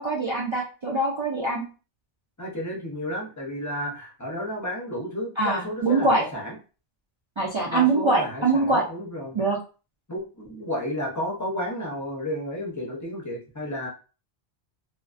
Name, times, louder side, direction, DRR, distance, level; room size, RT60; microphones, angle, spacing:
voice 1, 0.0-1.6 5.4-6.2 7.4-8.8 9.3-9.6, right 3 dB, 50° right, -3 dB, 0.3 m, -23 dB
voice 2, 2.4-6.6 7.7-9.3 10.1-13.9, equal, 20° left, -2 dB, 0.6 m, -32 dB
2.4 x 2.1 x 2.4 m, 0.35 s
omnidirectional pair, 1.1 m